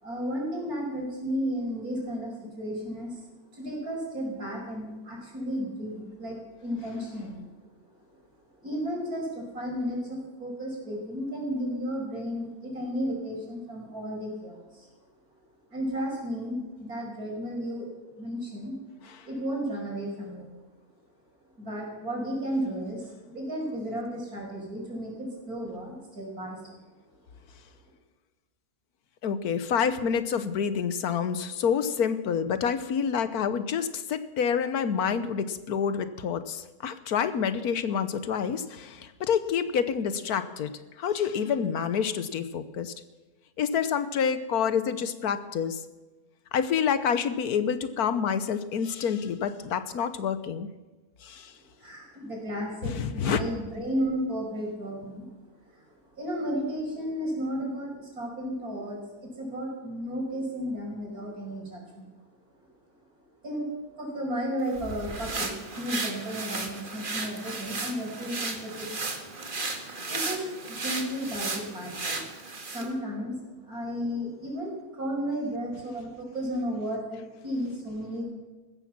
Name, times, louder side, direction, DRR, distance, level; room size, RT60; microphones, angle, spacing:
voice 1, 0.0-3.1 3.5-7.4 8.6-14.6 15.7-17.9 18.2-18.7 19.3-20.5 21.6-26.6 51.8-55.2 56.2-59.0 59.4-62.1 63.4-63.7 64.0-69.2 70.1-70.4 70.7-72.2 72.7-73.4 73.7-74.7 75.0-78.3, equal, 75° right, -1 dB, 5.9 m, -33 dB
voice 2, 29.2-42.9 43.6-45.8 46.5-50.7 51.2-51.5 52.8-53.4, left 7 dB, 80° left, 12 dB, 1.5 m, -28 dB
sound 1, 64.7-72.9, right 3 dB, 35° right, 1.8 m, -35 dB
15.5 x 13.5 x 6.0 m, 1.2 s
omnidirectional pair, 1.6 m